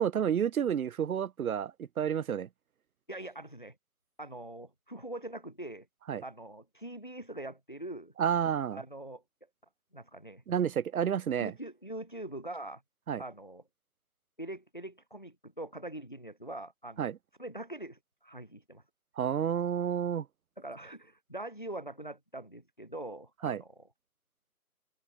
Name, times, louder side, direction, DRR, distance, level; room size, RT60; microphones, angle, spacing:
voice 1, 0.0-2.5 6.1-6.2 8.2-8.8 10.5-11.5 13.1-13.2 17.0-17.2 19.2-20.3 23.4-23.6, right 8 dB, 70° right, 0.5 m, -30 dB
voice 2, 3.1-3.8 4.2-5.9 6.2-8.1 8.7-9.2 9.9-10.4 11.4-12.8 13.2-13.6 14.4-17.1 17.4-18.8 20.6-23.9, right 1 dB, 35° left, 0.4 m, -43 dB
figure-of-eight pair, 150°, 44 cm